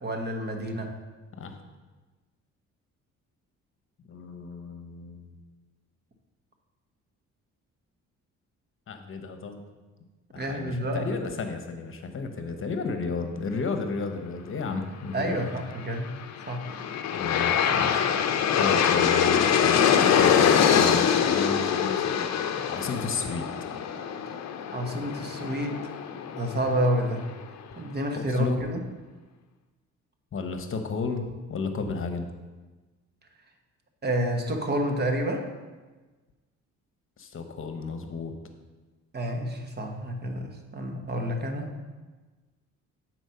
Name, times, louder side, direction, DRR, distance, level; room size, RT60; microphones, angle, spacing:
voice 1, 0.0-0.9 10.4-11.1 15.1-16.1 16.5-16.7 24.7-25.8 26.3-27.2 27.8-28.8 34.0-35.5 39.1-41.9, equal, 35° right, 4 dB, 1.2 m, -29 dB
voice 2, 4.1-5.4 8.9-9.6 10.3-15.5 17.1-18.1 18.6-22.3 22.7-23.5 28.1-28.6 30.3-32.3 37.2-38.3, left 4 dB, 45° left, 7 dB, 1.0 m, -33 dB
Aircraft, 16.2-27.3, left 8 dB, 60° left, 0.7 m, -24 dB
7.9 x 4.4 x 5.6 m, 1.3 s
cardioid pair, 90°, 30 cm